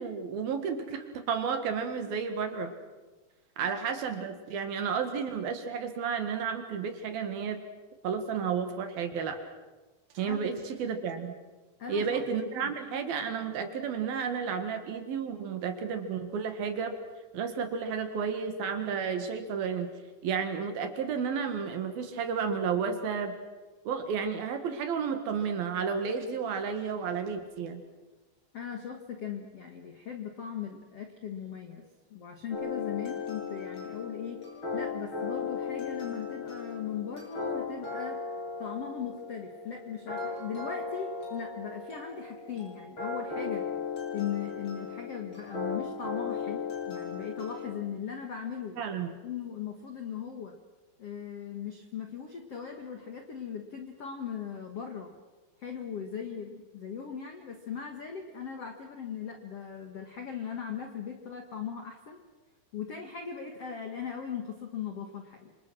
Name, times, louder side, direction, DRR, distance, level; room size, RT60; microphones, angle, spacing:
voice 1, 0.0-2.7 3.6-7.6 8.0-9.4 10.1-11.3 11.9-17.0 17.3-19.9 20.2-23.3 23.8-27.8 48.8-49.1, right 6 dB, 60° right, 7 dB, 3.3 m, -32 dB
voice 2, 11.8-12.7 28.5-31.8 32.1-34.4 34.7-38.2 38.6-43.6 44.1-48.8 49.2-50.6 51.0-55.1 55.6-62.2 62.7-65.7, left 7 dB, 60° left, 4 dB, 1.6 m, -39 dB
sound 1, 32.5-47.8, left 5 dB, 25° left, 8.0 m, -37 dB
28.5 x 26.5 x 6.2 m, 1.2 s
omnidirectional pair, 5.2 m